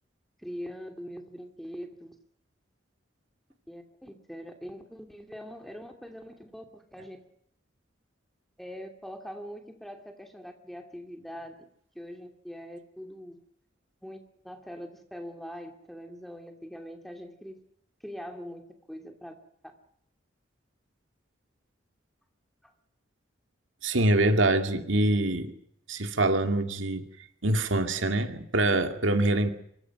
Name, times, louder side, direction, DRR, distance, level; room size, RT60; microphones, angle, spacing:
voice 1, 0.4-2.2 3.7-7.2 8.6-11.6 11.9-13.4 14.0-17.6 18.0-19.4 22.6-22.7, equal, ahead, 4 dB, 2.7 m, -42 dB
voice 2, 23.8-25.5 25.9-27.1 27.4-29.5, right 2 dB, 85° right, 7 dB, 2.5 m, -25 dB
25.0 x 23.5 x 6.1 m, 0.71 s
head